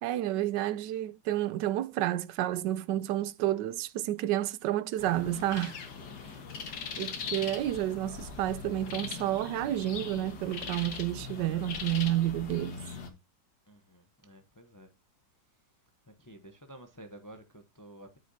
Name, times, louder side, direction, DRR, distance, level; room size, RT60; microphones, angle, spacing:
voice 1, 0.0-5.8 7.0-12.8, right 13 dB, 80° right, 1.3 m, -30 dB
sound 1, 5.0-13.1, left 5 dB, 70° left, 2.1 m, -40 dB
voice 2, 6.1-6.5 13.7-14.9 16.2-18.2, right 1 dB, 25° left, 0.4 m, -51 dB
9.6 x 8.2 x 2.7 m
omnidirectional pair, 1.9 m